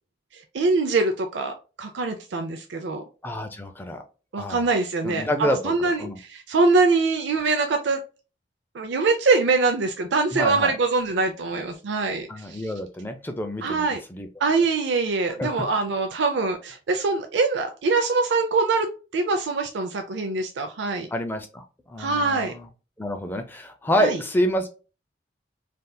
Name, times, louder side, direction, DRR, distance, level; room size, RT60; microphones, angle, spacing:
voice 1, 0.3-3.0 4.3-8.0 8.7-12.6 13.6-14.0 14.4-21.1 22.0-22.5 24.0-24.2, right 3 dB, 70° right, 5 dB, 0.4 m, -23 dB
voice 2, 3.2-4.0 4.4-4.6 5.0-6.2 10.3-10.7 12.3-14.3 15.3-15.6 21.1-22.7 23.0-24.7, equal, 10° left, 5 dB, 0.4 m, -28 dB
3.4 x 2.8 x 2.2 m, 0.33 s
head